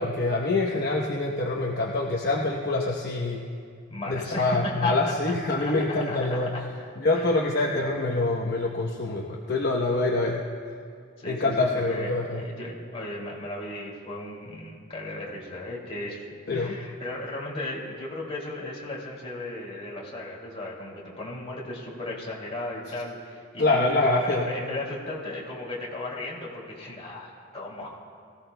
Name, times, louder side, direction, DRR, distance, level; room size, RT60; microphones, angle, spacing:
voice 1, 0.0-3.4 4.1-6.5 7.0-10.4 11.3-12.4 16.5-16.7 23.6-24.5, left 2 dB, 50° left, -2 dB, 0.9 m, -25 dB
voice 2, 3.9-4.9 5.7-6.7 7.1-7.3 11.2-16.3 16.5-28.0, left 1 dB, 30° left, -4 dB, 2.5 m, -36 dB
23.0 x 15.5 x 2.2 m, 2.3 s
head